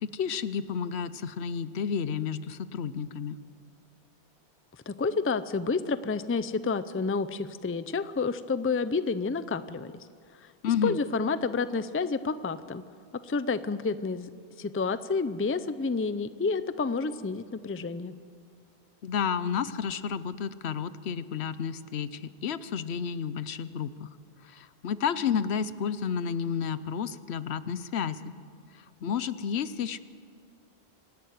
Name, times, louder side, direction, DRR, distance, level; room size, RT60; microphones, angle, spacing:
voice 1, 0.0-3.4 10.6-11.0 19.0-24.1 24.4-28.4 28.7-30.0, left 7 dB, 80° left, 15 dB, 1.0 m, -31 dB
voice 2, 4.9-10.1 10.4-10.5 10.8-12.8 13.2-14.3 14.6-18.1, left 4 dB, 20° left, 13 dB, 0.4 m, -29 dB
25.0 x 11.5 x 9.4 m, 2.2 s
omnidirectional pair, 1.1 m